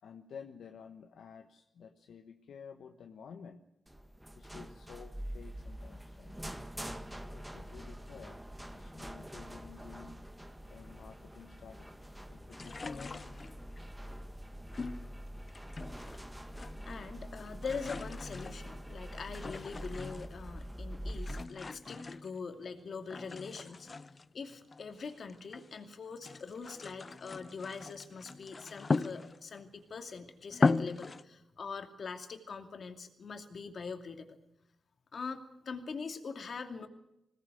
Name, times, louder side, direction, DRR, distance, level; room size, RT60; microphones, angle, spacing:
voice 1, 0.0-3.6 4.4-6.4 7.3-8.4 8.7-10.2 10.7-12.0 12.3-13.4, left 7 dB, 80° left, 5 dB, 1.3 m, -52 dB
sound 1, 3.9-21.4, equal, 10° right, 1.6 m, -45 dB
sound 2, 12.5-13.8 14.7-16.2 16.5-17.1 17.4-20.5 21.1-22.7 23.1-25.7 26.1-29.7 30.1-30.2 30.5-31.3, left 4 dB, 40° left, 0.7 m, -37 dB
voice 2, 16.9-23.9 24.3-34.4 35.1-36.9, left 5 dB, 60° left, 6 dB, 2.5 m, -43 dB
21.0 x 18.0 x 7.9 m, 0.88 s
cardioid pair, 75°, 0 cm